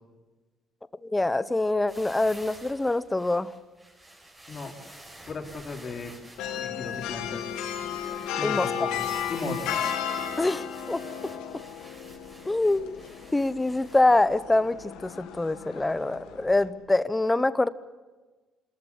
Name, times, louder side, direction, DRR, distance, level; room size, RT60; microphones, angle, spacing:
voice 1, 1.0-3.5 8.4-8.9 10.4-11.0 12.5-13.0 13.3-17.7, left 2 dB, 10° left, 15 dB, 0.9 m, -25 dB
sound 1, 1.9-14.0, right 1 dB, 20° right, 5.9 m, -49 dB
voice 2, 5.2-6.1 6.6-7.5 8.3-9.8, left 3 dB, 40° left, 1 dB, 3.9 m, -36 dB
sound 2, 6.4-16.7, left 9 dB, 90° left, 2.2 m, -34 dB
27.0 x 14.5 x 9.9 m, 1.3 s
cardioid pair, 110°, 0 cm